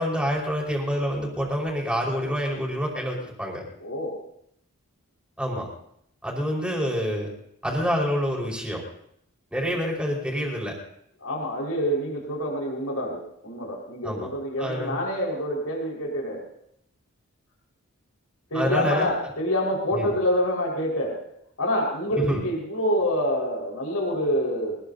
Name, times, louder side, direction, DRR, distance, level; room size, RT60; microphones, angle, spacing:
voice 1, 0.0-3.6 5.4-5.7 6.2-7.3 7.6-8.8 9.5-10.7 14.0-14.3 14.6-14.9 18.5-19.1 19.9-20.1 22.2-22.4, equal, 5° right, -1 dB, 4.9 m, -27 dB
voice 2, 3.8-4.2 11.2-16.4 18.5-21.2 21.6-24.8, equal, 80° left, -1 dB, 5.0 m, -27 dB
24.5 x 20.5 x 2.8 m, 0.75 s
head